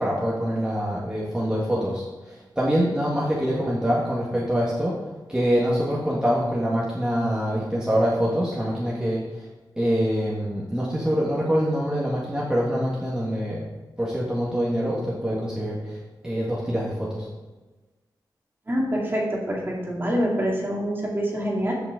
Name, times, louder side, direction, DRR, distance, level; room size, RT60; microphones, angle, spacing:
voice 1, 0.0-5.0 5.3-9.2 9.8-13.6 14.0-15.8 16.2-17.3, equal, 10° right, -6 dB, 1.6 m, -25 dB
voice 2, 18.7-21.7, equal, 30° right, -2 dB, 2.2 m, -25 dB
13.5 x 6.0 x 3.8 m, 1.2 s
wide cardioid pair, 105°, 8 cm